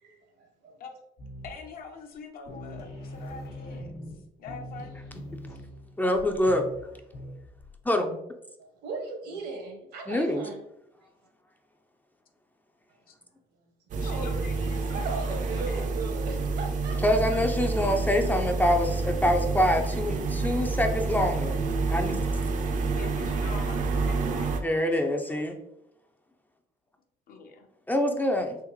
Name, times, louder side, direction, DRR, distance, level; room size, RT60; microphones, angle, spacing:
voice 1, 0.0-0.8 5.7-5.9 8.6-10.6 14.0-14.4 14.9-17.2, right 4 dB, 75° right, 3 dB, 1.0 m, -38 dB
sound 1, 1.2-1.8 2.1-2.2 2.5-7.8, equal, 90° left, 1.2 m, -42 dB
voice 2, 1.4-3.9 4.4-5.0 13.1-13.2 14.0-15.9 22.9-24.9 27.3-27.7, left 4 dB, 60° left, 4 dB, 0.7 m, -44 dB
voice 3, 6.0-6.7 7.8-8.2 10.1-10.4 17.0-21.6 21.9-22.3 24.6-25.6 27.9-28.6, left 1 dB, 10° left, 4 dB, 0.4 m, -25 dB
sound 2, 13.9-24.6, right 3 dB, 50° right, 0.5 m, -28 dB
3.5 x 2.9 x 3.1 m, 0.82 s
cardioid pair, 110°, 17 cm